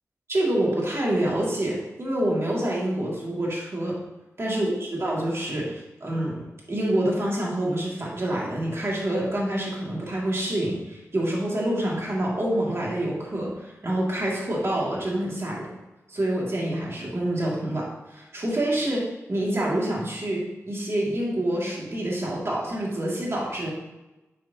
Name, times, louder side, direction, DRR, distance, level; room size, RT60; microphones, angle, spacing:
voice 1, 0.3-4.0 4.4-4.7 5.0-15.7 16.1-23.7, right 1 dB, 50° right, -4 dB, 2.2 m, -27 dB
9.9 x 4.9 x 2.8 m, 1.0 s
wide cardioid pair, 65°, 5 cm